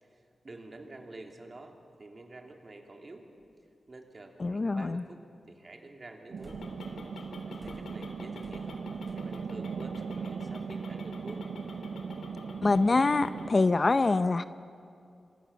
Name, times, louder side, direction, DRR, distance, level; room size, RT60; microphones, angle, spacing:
voice 1, 0.0-3.3 3.9-6.6 7.1-8.8 9.1-11.4, right 2 dB, 35° right, 3 dB, 3.2 m, -48 dB
sound 1, 3.4-3.5 6.4-6.9 7.5-9.1, left 1 dB, 10° left, 5.2 m, -53 dB
voice 2, 4.4-5.0 12.6-14.4, left 3 dB, 35° left, 12 dB, 0.6 m, -25 dB
sound 2, 6.3-13.5, right 5 dB, 85° right, 0.8 m, -39 dB
sound 3, 6.5-13.5, left 2 dB, 85° left, 3.6 m, -47 dB
27.0 x 25.5 x 7.1 m, 2.4 s
wide cardioid pair, 105°, 0 cm